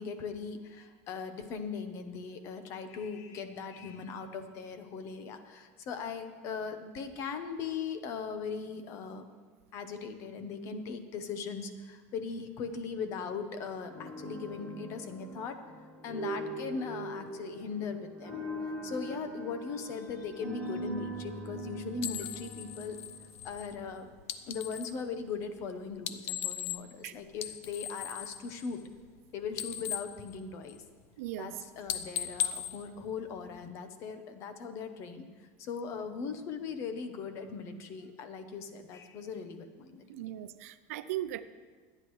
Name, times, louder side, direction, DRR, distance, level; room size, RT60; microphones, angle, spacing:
voice 1, 0.0-9.2 9.7-15.6 16.0-18.4 18.8-23.0 23.4-24.1 24.4-28.8 29.3-30.8 31.4-35.3 35.6-40.3, left 5 dB, 40° left, 9 dB, 1.0 m, -39 dB
sound 1, 13.9-23.9, right 1 dB, 10° left, 2.4 m, -41 dB
sound 2, 22.0-25.0 25.9-27.0 27.3-29.2 29.4-31.0 31.4-31.6 31.9-33.7, left 10 dB, 85° left, 0.7 m, -38 dB
voice 2, 31.2-31.5 40.1-41.4, right 13 dB, 90° right, 12 dB, 0.6 m, -38 dB
24.0 x 9.8 x 3.2 m, 1.5 s
supercardioid pair, 165°, 8 cm